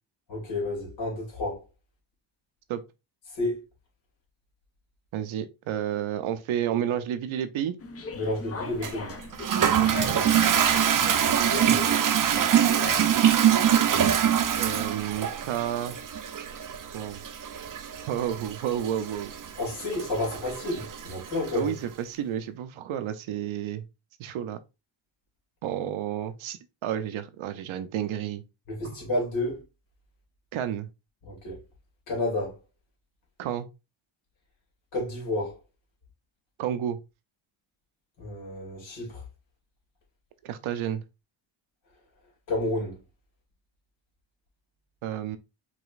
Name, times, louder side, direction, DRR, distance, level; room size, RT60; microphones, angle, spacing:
voice 1, 0.3-1.6 3.4-3.6 8.1-9.2 11.4-11.9 19.6-21.7 28.7-29.6 31.2-31.6 32.1-32.5 34.9-35.5 38.2-39.2 42.5-43.0, left 2 dB, 75° left, 2.4 m, -30 dB
voice 2, 5.1-7.8 9.8-10.5 14.6-16.0 16.9-17.2 18.1-19.3 21.5-23.9 24.2-24.6 25.6-28.4 28.8-29.0 30.5-30.9 33.4-33.7 36.6-37.0 40.4-41.0 45.0-45.4, right 10 dB, 90° right, 0.7 m, -31 dB
sound 1, 7.8-14.6, left 5 dB, 30° left, 0.6 m, -40 dB
Toilet flush, 8.8-21.6, right 9 dB, 45° right, 0.6 m, -24 dB
4.9 x 3.0 x 2.4 m
cardioid pair, 120°, 46 cm